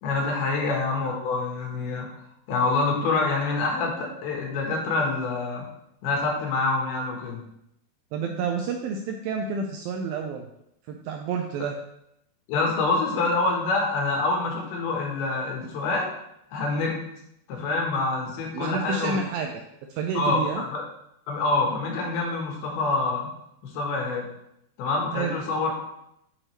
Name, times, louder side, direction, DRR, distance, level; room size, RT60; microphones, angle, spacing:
voice 1, 0.0-2.1 2.5-5.6 6.0-7.4 12.5-16.1 16.5-17.0 17.5-19.2 20.1-20.8 21.3-23.3 23.6-24.3 24.8-25.8, left 3 dB, 70° left, 0 dB, 3.1 m, -26 dB
voice 2, 8.1-10.5 10.9-11.8 18.5-19.6 19.9-20.6 25.1-25.4, right 5 dB, 85° right, 3 dB, 2.0 m, -29 dB
8.8 x 6.5 x 3.2 m, 0.80 s
omnidirectional pair, 4.8 m